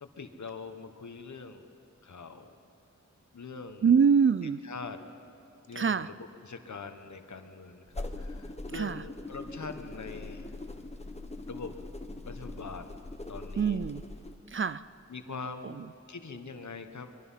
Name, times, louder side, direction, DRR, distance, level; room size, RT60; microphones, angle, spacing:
voice 1, 0.0-1.7 2.0-2.6 3.3-3.9 4.6-5.0 5.7-10.5 11.5-11.7 12.3-13.0 13.3-13.8 15.1-17.1, left 4 dB, 75° left, 7 dB, 1.4 m, -43 dB
voice 2, 3.8-4.6 5.7-6.1 8.7-9.0 13.6-14.0 14.5-14.8 15.6-15.8, right 6 dB, 45° right, 16 dB, 0.4 m, -25 dB
sound 1, 7.9-14.4, left 2 dB, 20° left, 1.2 m, -41 dB
24.0 x 22.0 x 5.7 m, 2.8 s
wide cardioid pair, 100°, 29 cm